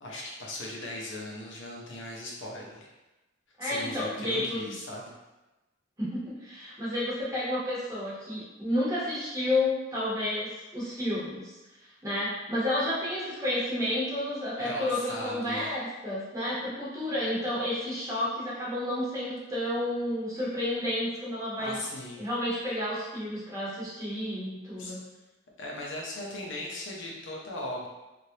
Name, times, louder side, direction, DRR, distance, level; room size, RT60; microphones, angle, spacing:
voice 1, 0.0-2.9 3.6-5.1 14.6-15.7 21.6-22.2 24.8-24.9 25.6-27.9, left 1 dB, 70° left, -2 dB, 0.7 m, -38 dB
voice 2, 3.6-4.7 6.0-11.5 12.0-21.8 22.2-25.0, left 1 dB, 15° right, -8 dB, 1.0 m, -31 dB
3.2 x 2.5 x 2.8 m, 1.1 s
head